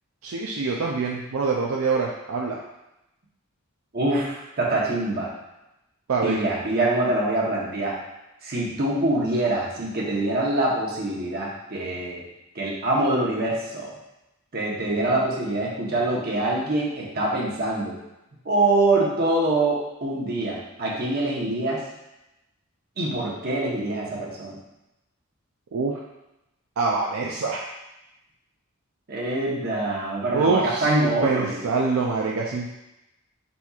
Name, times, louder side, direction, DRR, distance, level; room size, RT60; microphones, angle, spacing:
voice 1, 0.2-2.6 6.1-6.4 25.7-25.9 26.8-27.6 30.3-32.7, right 4 dB, 85° right, -2 dB, 0.4 m, -25 dB
voice 2, 3.9-5.3 6.2-7.9 8.4-12.2 12.5-13.9 14.5-18.0 18.4-21.8 23.0-24.6 29.1-31.6, right 2 dB, 50° right, -4 dB, 1.0 m, -25 dB
4.3 x 4.1 x 2.4 m, 0.93 s
head